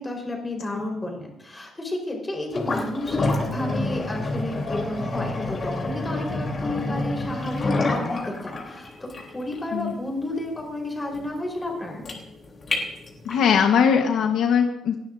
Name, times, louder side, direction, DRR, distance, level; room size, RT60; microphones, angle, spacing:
voice 1, 0.0-12.0, left 1 dB, 15° left, 0 dB, 4.2 m, -32 dB
sound 1, 2.5-13.5, left 2 dB, 30° left, 3.3 m, -28 dB
voice 2, 13.2-14.9, left 7 dB, 90° left, 3 dB, 1.2 m, -20 dB
29.5 x 12.0 x 2.6 m, 0.82 s
cardioid pair, 160°, 0 cm